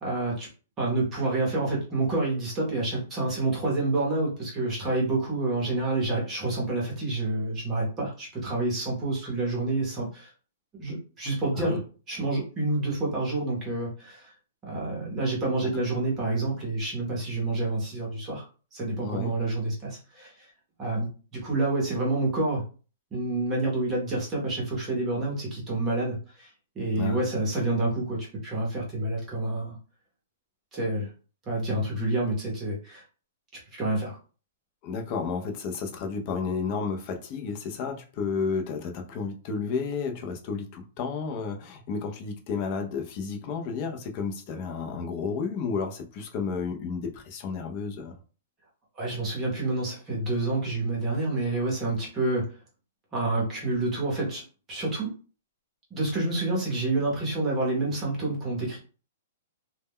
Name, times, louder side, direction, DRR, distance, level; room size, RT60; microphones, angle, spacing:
voice 1, 0.0-0.5 0.8-10.3 10.7-11.8 12.1-14.3 14.6-18.4 18.7-20.5 20.8-22.6 23.1-29.8 30.7-31.1 31.5-33.0 33.7-34.2 49.0-52.5 53.1-55.1 55.9-58.8, right 2 dB, 20° right, -3 dB, 0.8 m, -28 dB
voice 2, 34.8-48.1, left 5 dB, 35° left, 4 dB, 0.5 m, -32 dB
2.1 x 2.1 x 3.5 m, 0.37 s
hypercardioid pair, 165°, 0 cm